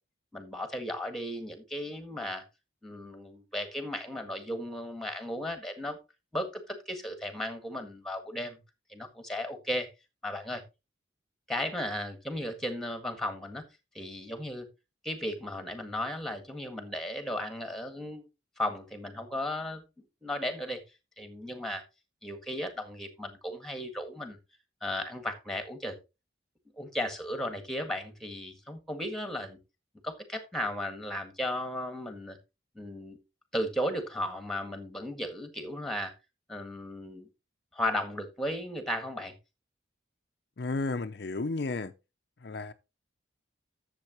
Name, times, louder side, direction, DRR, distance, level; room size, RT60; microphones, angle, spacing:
voice 1, 0.3-2.4 2.8-6.0 6.3-8.6 8.9-9.9 10.2-10.6 11.5-13.7 13.9-14.7 15.0-18.3 18.6-19.8 20.2-20.8 21.2-21.8 22.2-24.4 24.8-26.0 26.8-29.6 30.0-32.4 32.7-33.2 33.5-36.1 36.5-37.3 37.7-39.3, left 1 dB, ahead, 1.8 m, -35 dB
voice 2, 40.6-41.9 42.4-42.7, left 3 dB, 60° left, 0.5 m, -33 dB
12.0 x 7.4 x 3.0 m
head